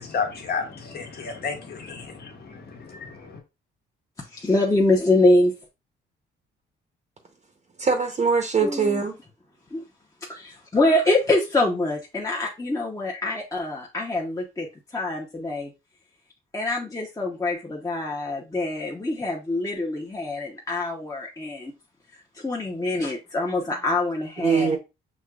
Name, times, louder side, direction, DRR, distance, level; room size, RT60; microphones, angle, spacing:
voice 1, 0.0-3.4, left 5 dB, 50° left, 1.4 m, -32 dB
voice 2, 4.2-5.5 8.6-9.0 9.7-9.8 10.3-14.7 14.9-15.7 16.5-21.7 22.4-24.8, left 2 dB, 15° left, 0.9 m, -24 dB
voice 3, 7.8-9.1 24.4-24.8, right 5 dB, 35° right, 0.8 m, -22 dB
6.2 x 2.9 x 2.4 m
cardioid pair, 90°, 20 cm